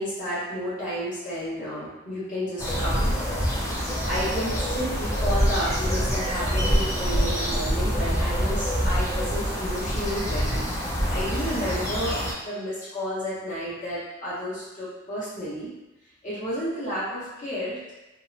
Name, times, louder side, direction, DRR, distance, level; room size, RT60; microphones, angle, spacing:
voice 1, 0.0-3.1 3.5-15.7 16.2-17.9, equal, 40° left, -11 dB, 1.0 m, -31 dB
sound 1, 2.6-12.3, equal, 15° left, 0.4 m, -26 dB
2.9 x 2.1 x 2.5 m, 1.0 s
head